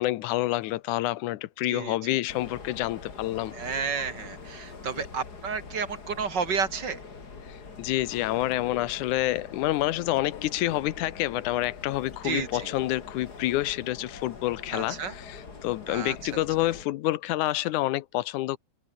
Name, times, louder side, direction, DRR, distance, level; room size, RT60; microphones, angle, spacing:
voice 1, 0.0-3.5 7.5-18.6, left 16 dB, 90° left, 2.3 m, -28 dB
voice 2, 1.7-2.2 3.5-7.0 12.2-12.7 14.7-15.2 15.9-16.4, right 5 dB, 40° right, 2.1 m, -32 dB
sound 1, 2.3-16.8, left 4 dB, 35° left, 3.1 m, -44 dB
open air
omnidirectional pair, 3.4 m